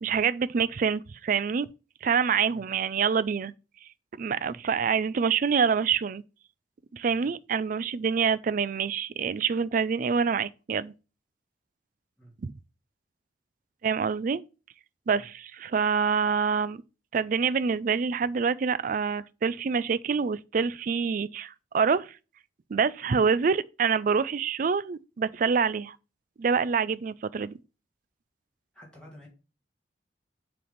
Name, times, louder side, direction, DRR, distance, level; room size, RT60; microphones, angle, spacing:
voice 1, 0.0-1.7 2.0-3.5 4.2-6.2 6.9-10.9 12.4-12.5 13.8-14.4 15.1-16.8 17.1-22.2 22.7-26.0 26.4-27.6, right 6 dB, 50° right, 0.4 m, -26 dB
voice 2, 28.7-29.3, equal, 5° left, 2.2 m, -51 dB
7.7 x 3.4 x 5.6 m
head